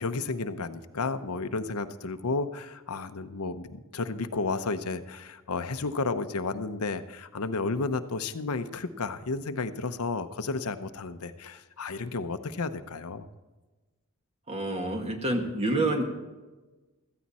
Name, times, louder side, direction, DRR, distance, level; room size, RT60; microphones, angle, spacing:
voice 1, 0.0-13.3, left 3 dB, 80° left, 10 dB, 0.8 m, -32 dB
voice 2, 14.5-16.0, right 2 dB, 30° right, 4 dB, 1.7 m, -28 dB
15.5 x 14.5 x 4.2 m, 1.2 s
head